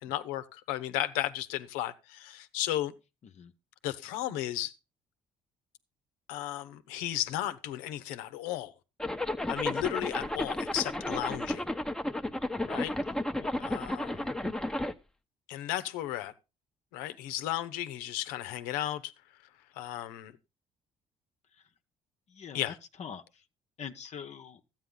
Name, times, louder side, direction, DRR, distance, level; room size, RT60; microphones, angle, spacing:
voice 1, 0.0-2.9 3.8-4.7 6.3-8.7 9.5-11.6 12.7-13.0 13.6-14.4 15.5-16.3 16.9-19.1 19.7-20.3 22.5-22.8, left 13 dB, 90° left, 0.8 m, -34 dB
Zipper (clothing), 9.0-14.9, left 1 dB, 5° left, 0.9 m, -33 dB
voice 2, 13.4-13.7 22.3-23.4 23.8-24.6, left 7 dB, 55° left, 0.9 m, -45 dB
13.0 x 8.9 x 3.8 m
supercardioid pair, 70°, 14 cm